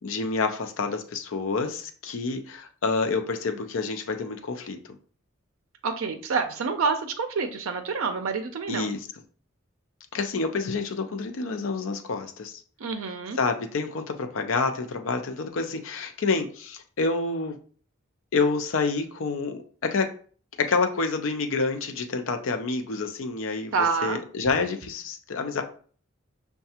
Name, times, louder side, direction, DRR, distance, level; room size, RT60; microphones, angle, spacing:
voice 1, 0.0-4.8 8.7-9.1 10.1-12.6 13.3-17.6 18.3-20.1 20.6-25.6, left 4 dB, 70° left, 6 dB, 0.5 m, -28 dB
voice 2, 5.8-8.9 12.8-13.4 23.7-24.2, right 5 dB, 75° right, 6 dB, 0.5 m, -27 dB
5.6 x 2.3 x 2.8 m, 0.44 s
head